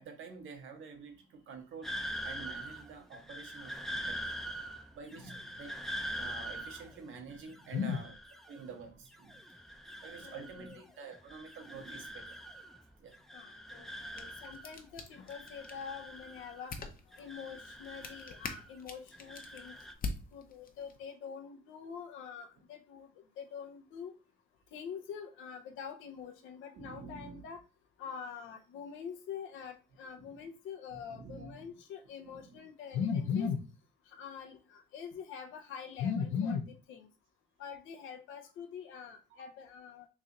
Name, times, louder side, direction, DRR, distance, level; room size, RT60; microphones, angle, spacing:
voice 1, 0.0-4.3 4.5-5.8 6.2-8.1 8.5-12.4 13.0-13.2 13.8-14.3 26.7-27.4 30.2-30.4 30.9-31.7 32.2-32.6 39.4-39.5, right 5 dB, 75° right, 4 dB, 1.0 m, -49 dB
sound 1, 1.8-8.8 9.1-10.8 11.1-12.9 13.1-14.8 15.1-16.8 17.1-18.8 19.1-19.9, equal, ahead, 0.4 m, -44 dB
voice 2, 10.2-10.8 13.3-16.8 17.2-19.8 20.3-23.1 23.4-24.1 24.7-27.6 28.0-33.6 34.1-37.1 37.6-40.1, left 6 dB, 90° left, 6 dB, 0.7 m, -41 dB
sound 2, 13.9-21.0, left 4 dB, 45° left, 0.7 m, -46 dB
3.2 x 2.8 x 3.7 m, 0.33 s
cardioid pair, 90°, 20 cm